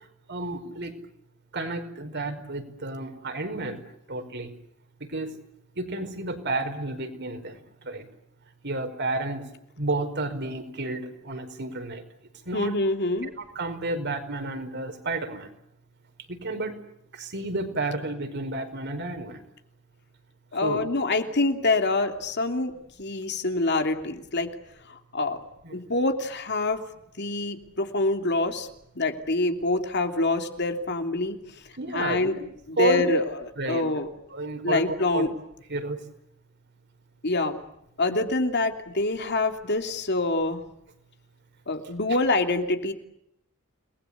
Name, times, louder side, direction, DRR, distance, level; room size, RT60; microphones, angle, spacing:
voice 1, 0.3-0.9 1.5-3.8 4.1-4.5 5.0-5.4 5.8-8.1 8.6-9.5 9.8-12.0 12.5-12.8 13.2-15.5 16.3-16.7 17.1-19.4 20.6-20.8 25.6-25.8 31.8-32.3 32.8-33.1 33.6-33.9 34.3-35.3 35.7-36.0 38.1-38.2, right 2 dB, 55° right, 6 dB, 5.1 m, -31 dB
voice 2, 12.5-13.3 20.5-22.7 23.0-24.5 24.9-25.4 25.7-26.8 27.2-28.7 28.9-31.4 31.9-32.3 32.7-34.1 34.6-35.3 37.2-37.6 38.0-40.6 41.7-42.9, left 2 dB, 55° left, 6 dB, 3.0 m, -26 dB
30.0 x 21.0 x 8.3 m, 0.78 s
head